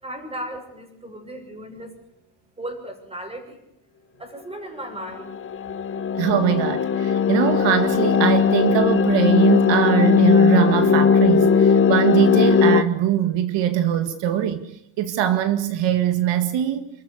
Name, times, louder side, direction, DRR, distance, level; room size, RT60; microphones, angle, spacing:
voice 1, 0.0-1.9 2.6-3.6 4.2-5.3, right 1 dB, 15° right, 5 dB, 6.7 m, -36 dB
sound 1, 5.1-12.8, left 6 dB, 30° left, 1.0 m, -18 dB
voice 2, 6.2-14.6 15.0-16.9, right 10 dB, 70° right, 9 dB, 2.0 m, -22 dB
29.0 x 14.0 x 9.8 m, 0.82 s
cardioid pair, 175°, 46 cm